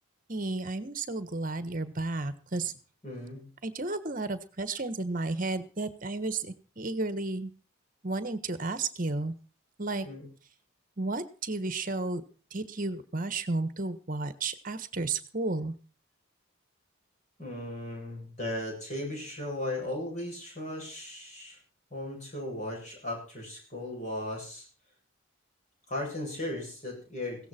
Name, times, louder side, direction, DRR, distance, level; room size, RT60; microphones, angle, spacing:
voice 1, 0.3-2.7 3.6-7.5 8.0-9.3 9.8-10.1 11.0-12.2 12.5-15.7, right 3 dB, 40° right, 13 dB, 1.4 m, -32 dB
voice 2, 3.0-3.5 10.0-10.3 17.4-21.6 21.9-24.7 25.9-27.5, left 1 dB, 35° left, -1 dB, 7.9 m, -36 dB
17.0 x 14.5 x 4.4 m, 0.38 s
head